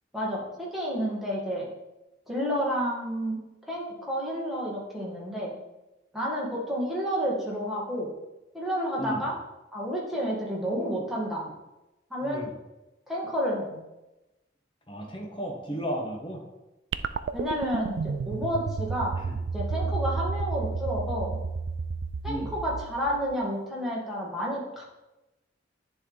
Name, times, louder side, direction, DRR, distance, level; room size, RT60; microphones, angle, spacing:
voice 1, 0.1-1.7 2.3-3.4 3.7-5.5 6.1-8.1 8.5-9.3 9.7-11.5 12.1-12.5 13.1-13.8 17.3-19.2 19.5-21.4 22.2-24.8, equal, ahead, -5 dB, 1.7 m, -30 dB
voice 2, 12.2-12.5 14.9-16.4 19.2-19.4 22.3-22.5, equal, 25° left, -1 dB, 1.3 m, -34 dB
sound 1, 16.9-23.4, right 5 dB, 65° right, 0.3 m, -32 dB
10.0 x 3.6 x 3.9 m, 0.99 s
head